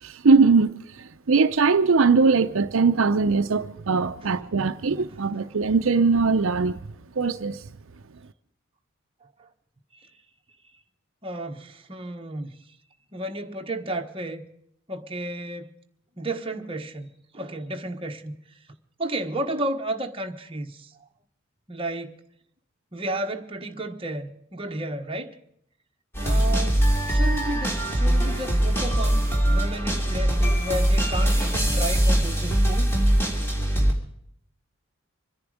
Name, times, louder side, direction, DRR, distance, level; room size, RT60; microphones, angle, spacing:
voice 1, 0.0-6.8 7.2-7.7, right 4 dB, 70° right, 0.6 m, -21 dB
voice 2, 11.2-12.6 13.1-14.5 14.9-15.7 16.2-18.3 19.0-20.9 21.7-22.2 22.9-25.3 26.2-29.2 29.5-32.9, right 1 dB, 25° right, 1.3 m, -32 dB
sound 1, 26.1-33.9, right 1 dB, 10° left, 3.2 m, -22 dB
25.0 x 10.5 x 4.9 m
head